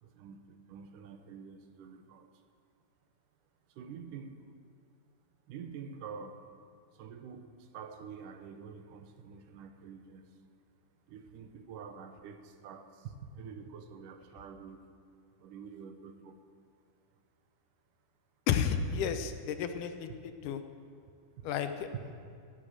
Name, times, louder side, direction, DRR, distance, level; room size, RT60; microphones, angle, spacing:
voice 1, 0.0-2.3 3.7-4.5 5.5-6.5 6.9-10.4 11.1-14.8 15.4-16.4 21.4-21.5 21.9-22.0, right 6 dB, 85° right, 8 dB, 2.5 m, -47 dB
voice 2, 18.5-20.1 20.4-20.6 21.4-21.9, left 7 dB, 85° left, 8 dB, 2.4 m, -31 dB
17.0 x 8.2 x 7.9 m, 2.4 s
omnidirectional pair, 3.6 m